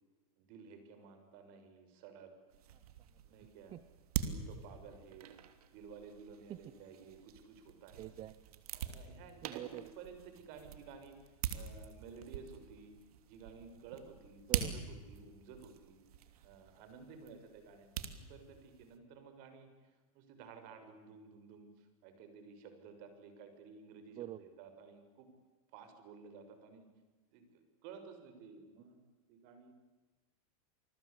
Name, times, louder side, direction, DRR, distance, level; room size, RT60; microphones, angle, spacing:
voice 1, 0.4-2.3 3.2-3.7 4.2-5.4 5.7-8.1 8.7-9.6 10.0-12.9 13.2-14.4 14.7-16.0 16.4-18.0 18.3-25.3 25.7-26.9 27.3-29.0 29.3-29.7, right 5 dB, 50° right, 8 dB, 6.5 m, -54 dB
sound 1, 2.5-19.0, right 9 dB, 80° right, 3.0 m, -44 dB
voice 2, 8.0-8.6 9.4-9.8 14.5-14.7 24.2-24.5, right 13 dB, 30° right, 15 dB, 0.9 m, -45 dB
28.5 x 20.5 x 8.6 m, 1.2 s
supercardioid pair, 140°, 19 cm